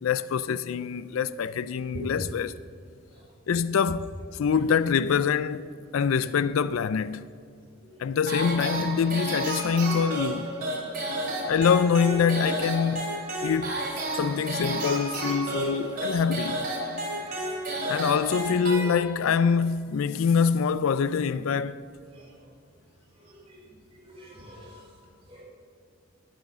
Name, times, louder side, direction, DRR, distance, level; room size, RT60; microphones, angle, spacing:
voice 1, 0.0-2.6 3.5-7.2 8.0-10.5 11.5-13.1 13.4-13.9 14.1-16.7 17.9-21.8, left 6 dB, 80° left, 0.4 m, -25 dB
sound 1, 8.3-19.4, right 1 dB, 40° right, 2.8 m, -32 dB
voice 2, 23.3-23.6 23.9-24.8 25.3-25.4, right 1 dB, 25° right, 3.1 m, -43 dB
11.5 x 8.6 x 5.6 m
head